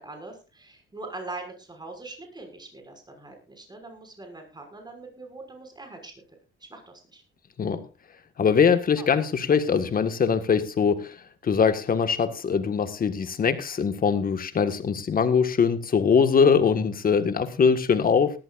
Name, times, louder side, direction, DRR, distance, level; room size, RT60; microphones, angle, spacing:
voice 1, 0.0-6.1 6.7-7.2 9.0-9.1, right 2 dB, 20° right, 4 dB, 6.1 m, -42 dB
voice 2, 8.4-18.4, left 6 dB, 45° left, 9 dB, 1.7 m, -22 dB
19.0 x 13.5 x 2.6 m, 0.30 s
cardioid pair, 90°, 20 cm